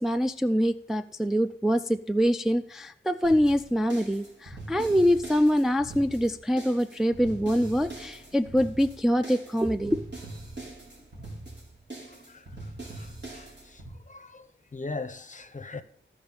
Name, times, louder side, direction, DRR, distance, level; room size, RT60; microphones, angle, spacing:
voice 1, 0.0-10.0, equal, ahead, 0.3 m, -25 dB
sound 1, 3.2-13.9, right 2 dB, 55° right, 3.9 m, -42 dB
voice 2, 13.3-13.8 14.1-14.5 14.7-15.8, left 3 dB, 40° left, 0.7 m, -39 dB
14.5 x 5.2 x 5.4 m
wide cardioid pair, 100°, 21 cm